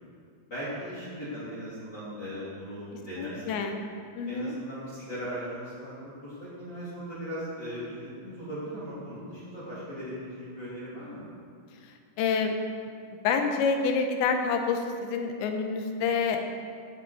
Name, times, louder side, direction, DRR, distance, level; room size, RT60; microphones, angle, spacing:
voice 1, 0.5-3.5 4.2-5.9 6.2-11.2, equal, 25° left, -11 dB, 3.4 m, -38 dB
voice 2, 3.2-3.8 4.1-4.6 11.8-12.6 13.2-16.4, left 5 dB, 85° left, 5 dB, 3.1 m, -28 dB
16.5 x 7.9 x 4.7 m, 2.2 s
omnidirectional pair, 5.2 m